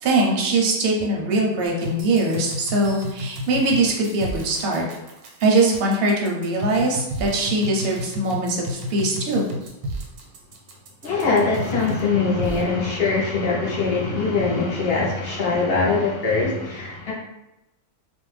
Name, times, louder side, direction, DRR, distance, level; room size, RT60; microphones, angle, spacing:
voice 1, 0.0-4.9 5.4-9.4, right 2 dB, 60° right, -1 dB, 0.7 m, -21 dB
sound 1, 1.7-12.1 12.4-12.6, left 1 dB, 85° right, 1.1 m, -32 dB
voice 2, 11.0-17.1, left 4 dB, 60° left, -4 dB, 0.7 m, -22 dB
2.5 x 2.1 x 3.1 m, 0.92 s
omnidirectional pair, 1.5 m